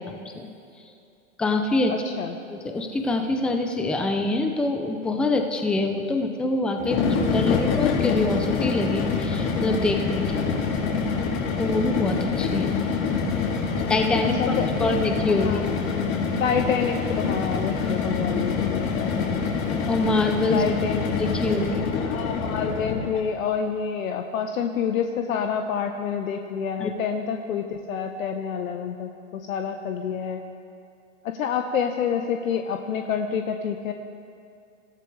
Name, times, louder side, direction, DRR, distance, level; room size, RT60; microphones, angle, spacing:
voice 1, 0.1-0.5 1.4-2.0 2.5-10.4 11.6-12.8 13.9-14.4 14.8-15.6 15.8-16.0 17.9-18.0 19.9-20.6 21.2-21.9 26.8-26.9, left 2 dB, ahead, 4 dB, 0.4 m, -25 dB
voice 2, 1.9-2.4 14.4-15.0 15.4-15.7 16.4-19.4 20.5-21.1 22.0-30.4 31.2-33.9, left 7 dB, 75° left, 5 dB, 1.1 m, -28 dB
sound 1, 6.8-23.2, left 5 dB, 45° left, 3.8 m, -26 dB
26.5 x 15.0 x 3.3 m, 2.5 s
hypercardioid pair, 135°, 41 cm